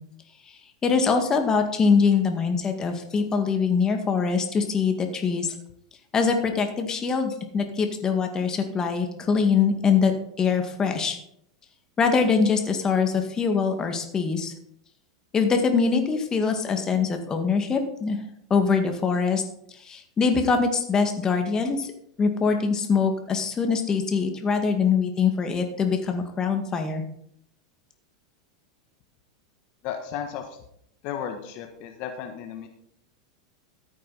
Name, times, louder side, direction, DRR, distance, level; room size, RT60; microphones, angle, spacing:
voice 1, 0.8-5.5 6.1-10.1 10.4-11.2 12.0-14.5 15.3-18.2 18.5-19.4 19.8-21.9 22.2-27.0, left 5 dB, 25° left, 5 dB, 2.0 m, -23 dB
voice 2, 29.8-30.6 31.0-32.7, left 8 dB, 50° left, 4 dB, 1.4 m, -34 dB
14.0 x 8.6 x 4.2 m, 0.72 s
hypercardioid pair, 95°, 3 cm